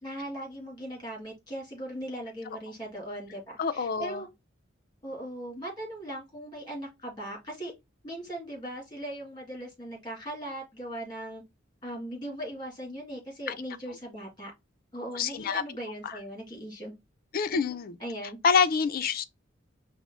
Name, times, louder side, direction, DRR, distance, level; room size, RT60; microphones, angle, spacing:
voice 1, 0.0-4.3 5.0-7.7 8.0-11.4 11.8-14.5 14.9-16.9 17.5-17.6 18.0-18.4, right 1 dB, 25° left, 2.0 m, -39 dB
voice 2, 3.6-4.3 13.5-13.6 15.1-15.6 16.0-16.2 17.3-17.9 18.4-19.3, left 5 dB, 50° left, 0.4 m, -27 dB
5.0 x 2.0 x 3.5 m
head